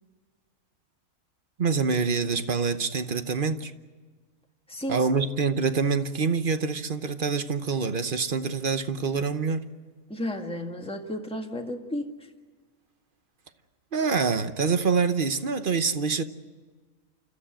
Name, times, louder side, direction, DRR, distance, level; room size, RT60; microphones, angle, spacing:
voice 1, 1.6-3.7 4.9-9.7 13.9-16.2, right 5 dB, 40° right, 11 dB, 0.9 m, -26 dB
voice 2, 4.7-5.1 10.1-12.1, left 1 dB, 5° left, 3 dB, 1.7 m, -33 dB
29.5 x 14.0 x 9.0 m, 1.4 s
omnidirectional pair, 1.5 m